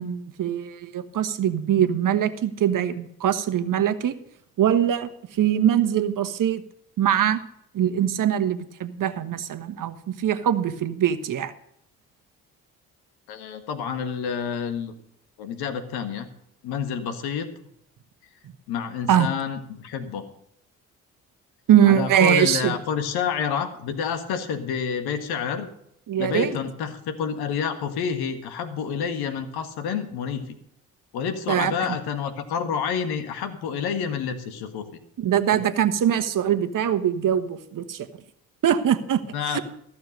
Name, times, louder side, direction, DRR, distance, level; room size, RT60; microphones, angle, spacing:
voice 1, 0.0-4.1 4.6-6.6 7.0-7.4 7.7-11.5 19.1-19.3 21.7-22.8 26.1-26.6 31.5-31.7 35.2-38.1 38.6-39.2 39.5-39.6, right 10 dB, 55° right, 11 dB, 1.3 m, -22 dB
voice 2, 13.3-14.9 15.4-16.3 16.6-17.5 18.7-20.3 21.9-25.7 26.2-30.4 31.1-34.9 35.5-35.6 39.3-39.6, left 7 dB, 70° left, 9 dB, 1.7 m, -29 dB
14.5 x 6.8 x 6.6 m, 0.73 s
hypercardioid pair, 50°, 39 cm